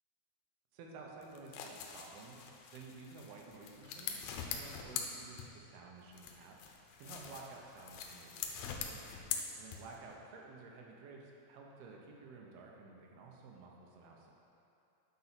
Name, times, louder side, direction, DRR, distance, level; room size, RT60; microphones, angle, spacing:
voice 1, 0.7-2.4 2.7-6.6 7.0-9.0 9.6-14.3, right 3 dB, 85° right, 0 dB, 2.9 m, -53 dB
sound 1, 1.2-5.8 6.1-10.1, left 7 dB, 90° left, 2.6 m, -44 dB
9.6 x 4.6 x 5.9 m, 2.8 s
omnidirectional pair, 4.4 m